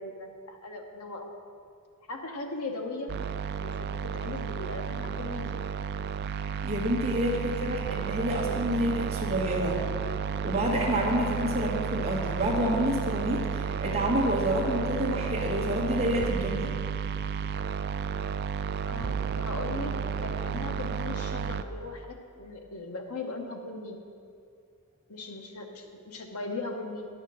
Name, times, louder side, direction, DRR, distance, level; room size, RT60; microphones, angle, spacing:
voice 1, 0.0-1.3 2.1-3.1 3.6-5.6 7.4-7.8 18.8-24.0 25.1-27.1, left 3 dB, 80° left, 3 dB, 1.1 m, -38 dB
sound 1, 3.1-21.6, right 6 dB, 45° right, 0.3 m, -32 dB
voice 2, 6.6-9.8 10.4-16.7, equal, 30° right, -4 dB, 1.7 m, -28 dB
10.0 x 6.6 x 6.2 m, 2.3 s
head